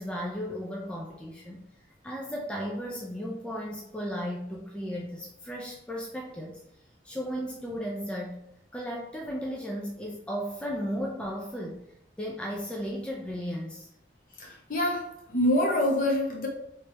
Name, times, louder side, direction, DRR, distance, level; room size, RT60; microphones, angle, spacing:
voice 1, 0.0-1.6 2.0-6.6 7.0-8.4 8.7-11.9 12.2-13.9, equal, 5° left, -2 dB, 0.4 m, -35 dB
voice 2, 14.4-16.5, left 1 dB, 50° left, -1 dB, 0.8 m, -26 dB
3.1 x 3.0 x 3.3 m, 0.80 s
head